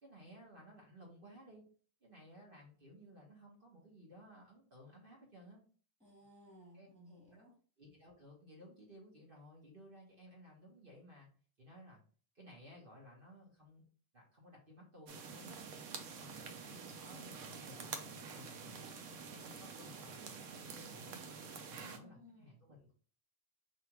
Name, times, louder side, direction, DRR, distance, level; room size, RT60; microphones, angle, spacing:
voice 1, 0.0-1.6 2.0-5.6 6.7-6.9 7.3-7.4 7.8-11.3 11.6-12.0 12.3-13.8 14.1-15.6 16.1-18.0 18.3-18.9 19.2-21.2 21.5-22.9, equal, 50° right, -3 dB, 1.4 m, -57 dB
voice 2, 6.0-7.5 21.8-22.5, equal, 5° left, -5 dB, 1.3 m, -59 dB
sound 1, 15.1-22.0, right 5 dB, 90° right, 1.0 m, -48 dB
3.3 x 2.9 x 4.4 m, 0.42 s
omnidirectional pair, 1.3 m